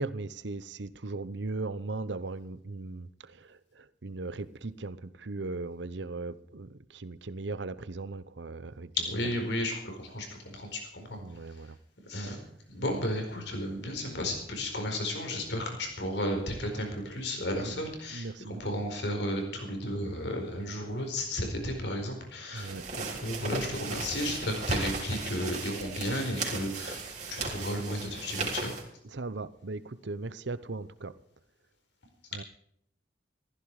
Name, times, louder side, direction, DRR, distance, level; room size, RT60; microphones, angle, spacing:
voice 1, 0.0-8.9 11.1-11.8 12.3-12.4 17.6-17.8 18.1-18.8 22.5-22.9 29.0-31.1 32.3-32.4, right 3 dB, 75° right, 15 dB, 0.9 m, -38 dB
voice 2, 9.0-11.2 12.1-12.4 12.7-28.7, left 1 dB, 75° left, 4 dB, 4.5 m, -33 dB
sound 1, 22.6-28.8, right 4 dB, 40° right, 3.8 m, -37 dB
15.0 x 15.0 x 4.9 m, 0.71 s
head